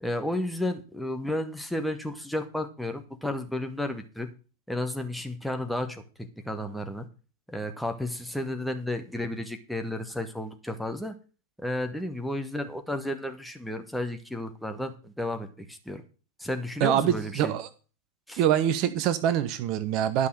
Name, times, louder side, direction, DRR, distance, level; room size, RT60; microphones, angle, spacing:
voice 1, 0.0-4.3 4.7-7.1 7.5-11.1 11.6-16.0 16.4-17.5 18.3-18.4, left 1 dB, ahead, 5 dB, 1.4 m, -32 dB
voice 2, 16.8-17.7 18.4-20.3, right 10 dB, 40° right, 12 dB, 0.9 m, -24 dB
11.5 x 5.6 x 6.7 m, 0.36 s
figure-of-eight pair, 90°, 0 cm